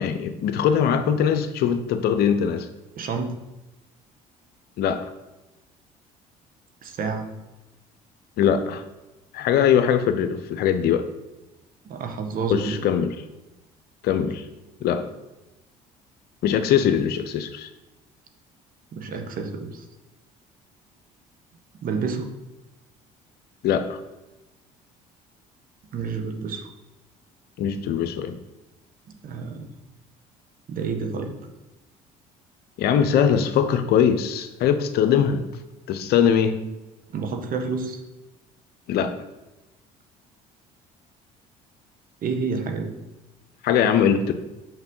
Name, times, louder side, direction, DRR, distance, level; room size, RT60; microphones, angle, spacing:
voice 1, 0.0-2.7 4.8-5.1 8.4-8.8 9.3-11.1 12.5-13.1 14.0-14.4 14.8-15.1 16.4-17.7 23.6-24.0 27.6-28.4 32.8-35.4 35.9-36.6 38.9-39.1 43.6-44.3, left 8 dB, 65° left, 9 dB, 0.8 m, -21 dB
voice 2, 2.9-3.3 6.8-7.3 11.8-12.8 18.9-19.8 21.8-22.3 25.9-26.7 29.2-29.7 30.7-31.3 37.1-38.0 42.2-42.9, right 5 dB, 55° right, 5 dB, 1.4 m, -29 dB
5.9 x 5.3 x 5.5 m, 1.0 s
supercardioid pair, 70°, 17 cm